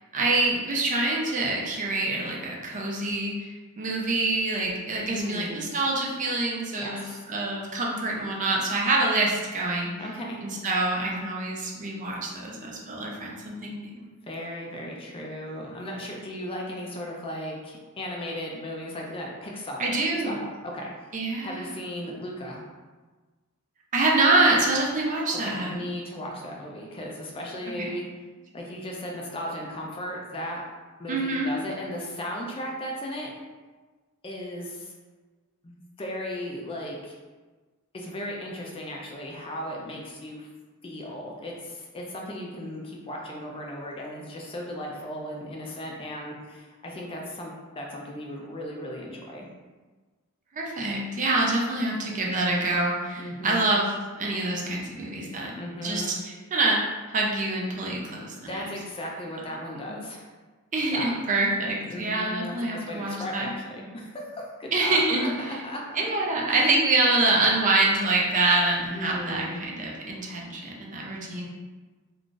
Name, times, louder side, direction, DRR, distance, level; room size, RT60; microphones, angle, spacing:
voice 1, 0.1-3.5 3.8-7.0 7.3-9.9 10.4-14.1 19.8-20.4 21.1-21.6 23.9-25.7 27.8-27.9 31.1-31.5 50.5-55.5 55.8-58.6 59.9-60.0 60.7-63.5 64.7-65.3 66.0-71.5, right 2 dB, 35° right, -2 dB, 0.5 m, -26 dB
voice 2, 5.1-5.7 6.7-7.3 10.0-10.4 14.3-20.0 20.2-20.9 21.4-22.6 25.3-28.1 28.5-30.6 31.0-33.3 34.2-34.9 35.6-37.1 37.9-40.5 40.8-49.5 53.2-53.7 55.5-56.1 58.5-60.3 60.9-61.1 61.9-66.0 66.6-66.7 68.9-69.6, equal, 25° left, -1 dB, 0.4 m, -36 dB
2.4 x 2.4 x 3.8 m, 1.3 s
head